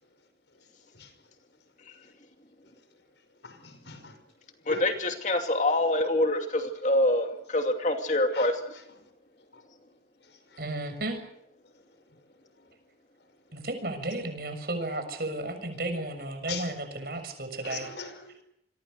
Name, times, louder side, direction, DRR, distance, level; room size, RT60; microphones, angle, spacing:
voice 1, 3.4-4.2 4.7-4.9 8.3-8.5 9.5-9.6 16.5-16.7 17.6-18.4, left 5 dB, 80° left, 9 dB, 5.5 m, -40 dB
voice 2, 4.7-8.6, left 1 dB, 40° left, 5 dB, 2.6 m, -25 dB
voice 3, 10.6-11.2 13.5-17.9, right 2 dB, 55° right, 7 dB, 6.7 m, -33 dB
27.5 x 23.0 x 6.6 m, 0.75 s
head